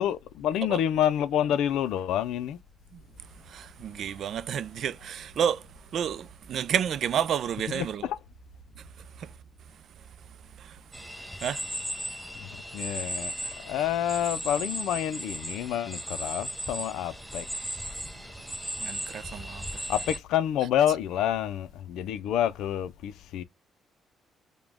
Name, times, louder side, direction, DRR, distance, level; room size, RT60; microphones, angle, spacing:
voice 1, 0.0-2.6 7.7-8.2 12.4-17.8 19.9-23.4, left 10 dB, 85° left, 0.4 m, -28 dB
voice 2, 3.5-5.6 5.9-8.1 11.4-11.6 18.8-19.6 20.6-20.7, right 8 dB, 65° right, 0.3 m, -30 dB
sound 1, 10.9-20.2, right 1 dB, 5° right, 0.6 m, -36 dB
5.0 x 2.2 x 3.4 m
cardioid pair, 90°, 0 cm